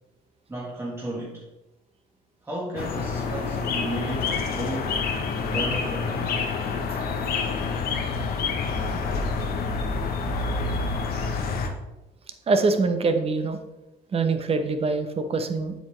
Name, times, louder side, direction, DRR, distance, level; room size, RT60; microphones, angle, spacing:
voice 1, 0.5-1.4 2.4-5.0 5.4-6.4, right 1 dB, 15° right, -5 dB, 1.6 m, -33 dB
sound 1, 2.8-11.7, left 4 dB, 65° left, 1.1 m, -27 dB
voice 2, 12.5-13.6 14.1-15.7, right 3 dB, 35° right, 8 dB, 1.0 m, -24 dB
7.7 x 6.9 x 3.3 m, 1.0 s
cardioid pair, 110°, 17 cm